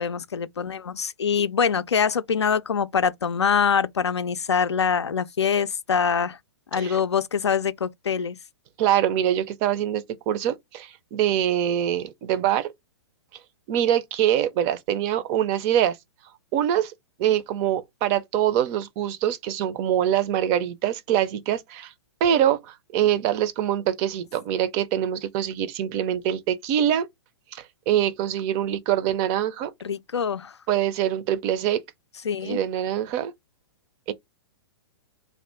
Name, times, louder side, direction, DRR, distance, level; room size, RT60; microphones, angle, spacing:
voice 1, 0.0-6.4 6.7-8.4 29.8-30.5 32.2-32.6, left 6 dB, 80° left, 0.4 m, -24 dB
voice 2, 8.8-12.7 13.7-16.0 16.5-16.9 17.2-21.9 22.2-27.1 27.5-29.7 30.7-31.8 32.4-33.3 34.1-34.2, right 10 dB, 30° right, 0.5 m, -24 dB
2.6 x 2.4 x 3.3 m
figure-of-eight pair, 115°, 14 cm